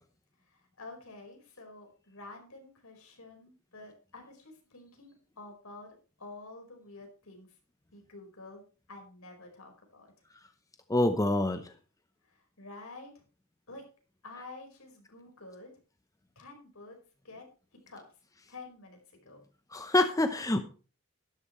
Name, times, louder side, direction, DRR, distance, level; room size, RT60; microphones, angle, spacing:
voice 1, 0.5-7.5 7.9-8.6 8.9-10.1 12.2-13.2 13.7-13.8 14.2-15.7 16.3-17.0 17.2-17.4 17.9-18.0 18.5-19.4, left 2 dB, 75° left, 3 dB, 4.9 m, -49 dB
voice 2, 10.9-11.7 19.7-20.6, left 2 dB, 15° left, 8 dB, 0.9 m, -26 dB
12.5 x 12.5 x 3.2 m, 0.36 s
head